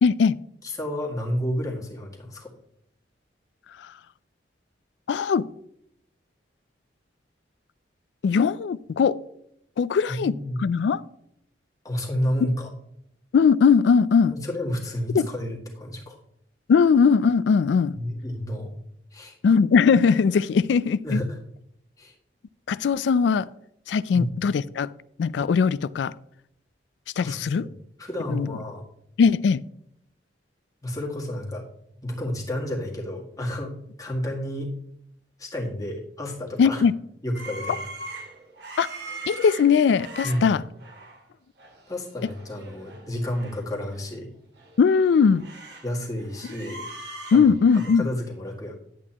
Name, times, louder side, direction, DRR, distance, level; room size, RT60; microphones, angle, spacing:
voice 1, 0.0-0.4 5.1-5.5 8.2-9.2 9.8-11.0 13.3-14.3 15.1-15.3 16.7-18.0 19.4-21.2 22.7-23.5 23.9-24.9 25.2-26.1 27.2-27.7 28.3-28.5 29.2-29.6 36.6-36.9 38.8-38.9 39.3-40.6 44.8-45.5 47.3-48.1, left 6 dB, 75° left, 0.3 m, -20 dB
voice 2, 0.6-2.5 10.1-10.6 11.8-12.7 14.3-16.2 17.9-18.7 19.1-19.4 21.0-21.4 22.0-22.1 24.1-24.3 27.2-28.8 30.8-31.6 32.0-34.7 35.4-36.8 37.2-37.9 40.2-40.5 41.9-44.3 45.8-46.8 47.3-48.8, left 1 dB, 20° left, 1.9 m, -31 dB
sound 1, 37.3-41.2 41.6-41.8 42.1-43.6 43.9-44.0 44.6-45.9 46.2-48.0, right 2 dB, 70° right, 2.0 m, -40 dB
10.5 x 8.4 x 2.9 m
head